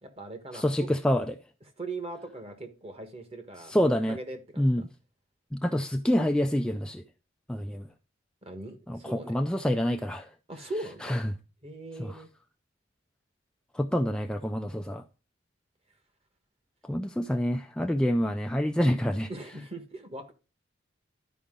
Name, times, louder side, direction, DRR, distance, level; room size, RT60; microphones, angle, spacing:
voice 1, 0.0-0.9 1.8-4.8 8.4-9.4 10.5-11.2 11.6-12.3 19.3-20.3, right 2 dB, 30° right, 1.3 m, -40 dB
voice 2, 0.5-1.4 3.7-4.2 4.6-4.8 5.5-7.0 7.5-7.8 8.9-10.3 11.0-11.2 12.0-12.2 13.7-15.0 16.9-19.3, equal, 5° left, 0.3 m, -27 dB
11.5 x 4.9 x 3.7 m
head